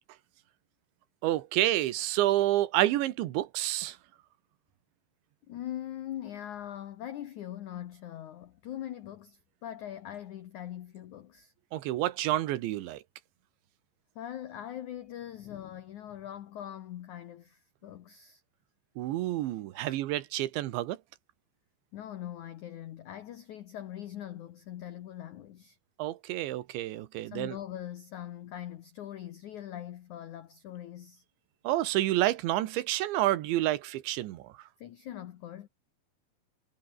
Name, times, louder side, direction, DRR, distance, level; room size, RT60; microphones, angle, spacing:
voice 1, 1.2-4.0 11.7-13.0 19.0-21.0 26.0-27.6 31.7-34.5, right 15 dB, 85° right, 3.6 m, -29 dB
voice 2, 5.5-11.5 14.2-18.4 19.7-20.0 21.9-25.8 27.2-31.2 34.8-35.7, left 11 dB, 80° left, 1.7 m, -42 dB
omnidirectional pair, 5.2 m